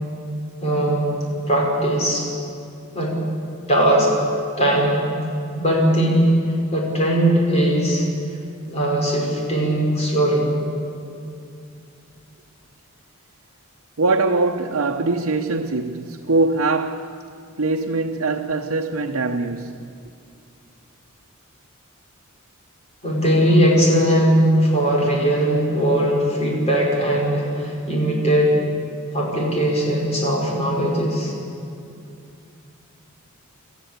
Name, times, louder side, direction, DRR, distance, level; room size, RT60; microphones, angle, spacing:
voice 1, 0.6-2.3 2.9-3.1 3.7-4.1 4.6-5.1 5.5-6.4 6.7-8.1 8.7-10.5 23.0-28.6 29.1-31.3, right 1 dB, 30° left, 5.2 m, -19 dB
voice 2, 14.0-17.1 17.6-20.0, right 3 dB, 90° right, 0.9 m, -22 dB
26.5 x 14.0 x 8.3 m
head